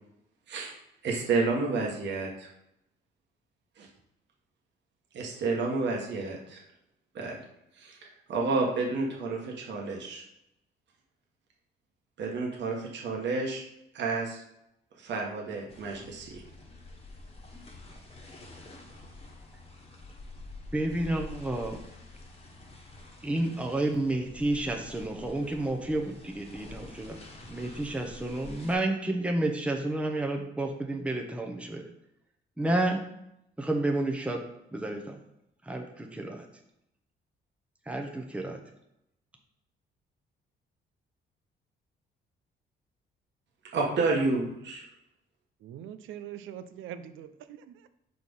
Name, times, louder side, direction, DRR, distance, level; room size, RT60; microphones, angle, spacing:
voice 1, 1.0-2.5 3.8-3.9 5.1-6.6 7.1-7.4 7.8-8.0 8.3-10.2 12.2-13.6 13.9-14.4 15.0-16.4 43.7-44.8, right 3 dB, 65° right, -1 dB, 1.4 m, -30 dB
sound 1, 15.7-28.7, left 2 dB, 30° left, 1.3 m, -48 dB
voice 2, 20.7-21.8 23.2-27.2 27.5-31.9 32.6-33.0 33.6-34.4 34.7-35.2 35.7-36.5 37.9-38.6, right 2 dB, 5° right, 2 dB, 0.8 m, -30 dB
voice 3, 45.6-47.9, right 10 dB, 80° right, 12 dB, 0.5 m, -43 dB
4.7 x 4.1 x 5.4 m, 0.82 s
cardioid pair, 90°, 20 cm